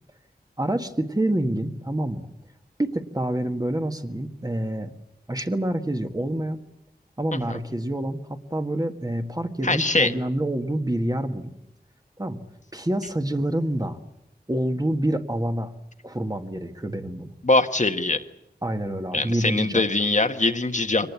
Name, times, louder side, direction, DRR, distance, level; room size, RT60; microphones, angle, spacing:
voice 1, 0.6-2.3 2.8-4.9 5.3-6.6 7.2-11.5 12.2-12.4 12.7-14.0 14.5-15.7 16.0-17.3 18.6-19.8, right 1 dB, 20° right, 6 dB, 1.7 m, -27 dB
voice 2, 9.6-10.1 17.4-18.2 19.1-21.1, left 2 dB, 45° left, 7 dB, 1.4 m, -22 dB
24.5 x 19.5 x 8.4 m, 0.84 s
wide cardioid pair, 70°, 17 cm